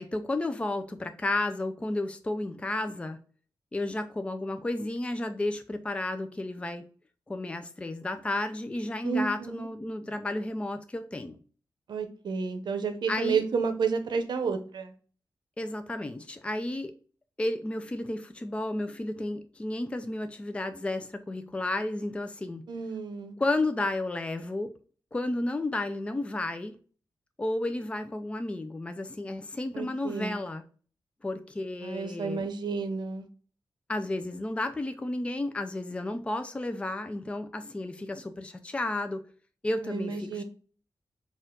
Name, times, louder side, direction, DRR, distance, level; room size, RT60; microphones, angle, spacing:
voice 1, 0.0-3.2 3.7-6.8 7.3-11.4 13.1-13.5 15.6-16.9 17.4-22.6 23.4-24.7 25.1-26.8 27.4-30.6 31.2-32.5 33.9-39.2 39.6-40.4, left 2 dB, 15° left, 0.4 m, -32 dB
voice 2, 9.0-9.7 11.9-14.9 22.7-23.4 29.7-30.4 31.8-33.3 39.8-40.4, right 5 dB, 75° right, 0.7 m, -31 dB
4.4 x 2.4 x 3.6 m
wide cardioid pair, 130°, 8 cm